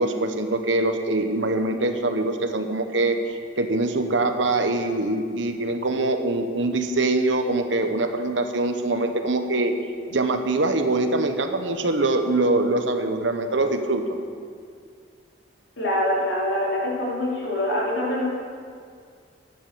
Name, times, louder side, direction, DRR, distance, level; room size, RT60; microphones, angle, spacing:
voice 1, 0.0-3.2 3.6-9.7 10.1-14.0, right 2 dB, 85° right, 7 dB, 1.1 m, -23 dB
voice 2, 15.8-18.3, left 1 dB, 80° left, -4 dB, 3.6 m, -24 dB
11.5 x 9.6 x 6.9 m, 2.1 s
head